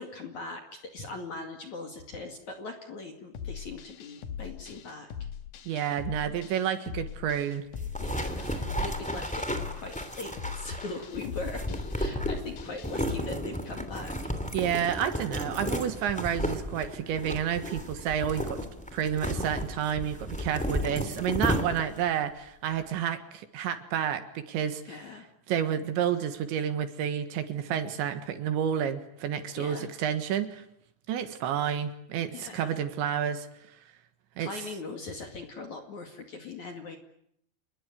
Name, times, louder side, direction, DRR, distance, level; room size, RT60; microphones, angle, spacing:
voice 1, 0.0-5.1 8.0-9.5 9.7-14.3 24.9-25.3 29.6-29.9 32.3-32.8 34.4-37.0, left 3 dB, 50° left, 4 dB, 2.7 m, -40 dB
sound 1, 3.3-13.2, left 8 dB, 80° left, 1.8 m, -41 dB
voice 2, 5.7-7.6 14.5-18.7 18.9-25.0 25.5-30.6 31.1-33.5 34.4-34.5, right 9 dB, 70° right, 9 dB, 3.5 m, -30 dB
sound 2, 7.7-22.1, equal, 5° left, 1.1 m, -33 dB
28.5 x 21.0 x 9.5 m, 0.75 s
omnidirectional pair, 5.9 m